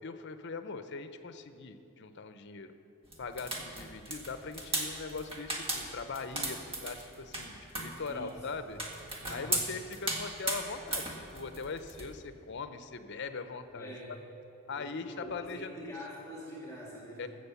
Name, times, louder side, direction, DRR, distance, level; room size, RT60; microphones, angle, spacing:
voice 1, 0.0-2.7 3.2-8.8 9.3-13.9 14.7-15.9 17.2-17.3, left 4 dB, 55° left, 10 dB, 0.7 m, -41 dB
sound 1, 3.1-12.1, right 2 dB, 25° right, 1.6 m, -36 dB
voice 2, 8.1-8.4 8.6-8.8 9.2-9.6 13.7-14.2 14.8-17.3, equal, 15° left, -4 dB, 1.9 m, -45 dB
15.0 x 6.5 x 6.9 m, 2.9 s
head